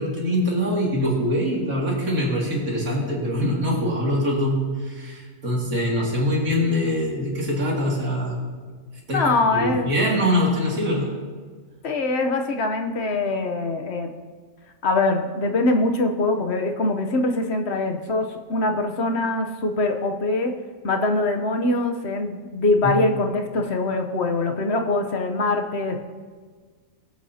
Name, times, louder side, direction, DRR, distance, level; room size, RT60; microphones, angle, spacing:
voice 1, 0.0-8.4 9.1-11.1 22.8-23.0, equal, 85° right, -4 dB, 2.9 m, -23 dB
voice 2, 9.1-9.9 11.8-14.1 14.8-20.5 20.8-26.0, left 2 dB, 55° left, 4 dB, 1.1 m, -23 dB
21.0 x 8.2 x 2.8 m, 1.5 s
omnidirectional pair, 1.4 m